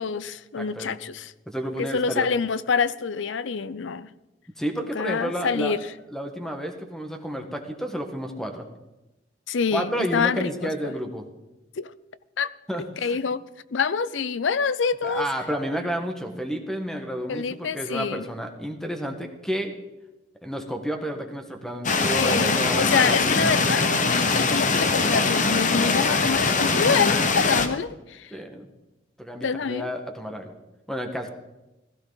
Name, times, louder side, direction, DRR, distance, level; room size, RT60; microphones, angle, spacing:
voice 1, 0.0-1.3 1.8-4.1 4.9-5.8 9.5-10.9 11.8-11.9 12.4-12.5 13.0-13.4 13.7-15.3 17.3-18.2 22.2-28.3 29.4-29.9, left 5 dB, 75° left, 0.6 m, -26 dB
voice 2, 0.6-1.0 1.5-2.3 4.6-5.8 6.1-8.7 9.7-11.3 12.7-13.2 15.0-19.7 20.4-23.2 28.3-28.7 29.2-30.5 30.9-31.3, equal, 5° left, 1.5 m, -31 dB
sound 1, 21.8-27.7, left 4 dB, 45° left, 1.1 m, -22 dB
16.0 x 14.5 x 4.0 m
head